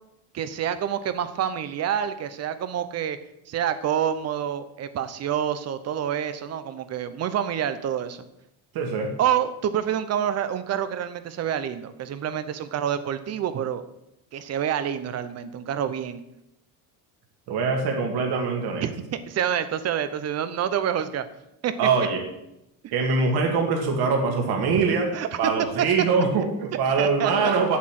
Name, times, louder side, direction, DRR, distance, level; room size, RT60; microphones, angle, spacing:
voice 1, 0.3-3.2 3.5-8.2 9.2-13.8 14.3-16.2 18.8-21.3 21.6-21.7 25.1-25.5 27.0-27.5, right 9 dB, 35° right, 12 dB, 0.8 m, -27 dB
voice 2, 8.7-9.1 17.5-18.9 21.8-22.2 22.9-25.1 25.4-27.8, right 4 dB, 55° right, 2 dB, 2.3 m, -23 dB
8.5 x 8.3 x 7.6 m, 0.84 s
cardioid pair, 180°, 45 cm